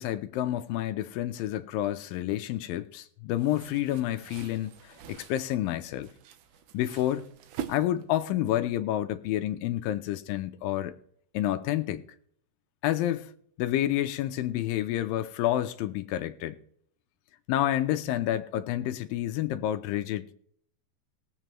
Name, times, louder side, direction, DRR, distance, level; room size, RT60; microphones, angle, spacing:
voice 1, 0.0-6.1 6.7-7.3 7.7-11.0 11.3-12.0 12.8-13.3 13.6-16.6 17.5-20.3, left 13 dB, 80° left, 2.2 m, -29 dB
sound 1, 3.4-8.3, right 9 dB, 75° right, 1.9 m, -44 dB
20.5 x 7.6 x 3.0 m
omnidirectional pair, 4.4 m